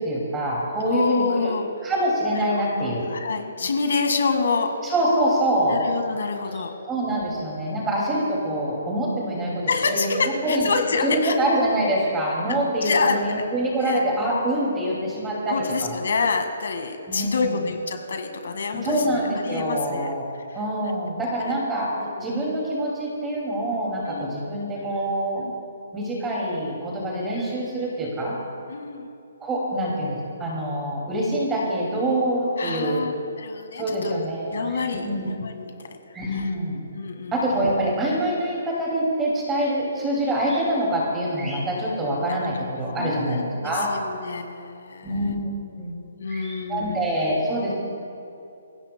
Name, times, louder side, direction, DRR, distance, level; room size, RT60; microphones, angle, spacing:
voice 1, 0.0-1.5 1.8-3.0 4.8-5.8 6.9-10.1 10.4-10.7 11.0-16.0 17.1-17.6 18.7-20.3 20.5-21.9 22.2-25.5 25.9-28.4 29.4-33.1 33.8-35.3 36.1-36.8 37.3-43.9 45.0-45.5 45.8-45.9 46.3-47.7, right 1 dB, 10° right, -4 dB, 2.4 m, -25 dB
voice 2, 0.8-1.7 2.4-4.8 5.7-6.8 7.1-7.4 9.7-11.4 12.8-13.2 13.8-14.0 15.5-20.1 20.5-20.6 21.4-21.6 22.0-22.3 24.1-24.4 25.4-25.5 28.7-29.1 32.6-35.7 36.3-36.5 36.9-37.7 42.3-42.4 43.0-45.3 46.2-47.1, left 4 dB, 65° left, 5 dB, 1.8 m, -27 dB
27.0 x 16.0 x 2.2 m, 2.6 s
hypercardioid pair, 175°, 0 cm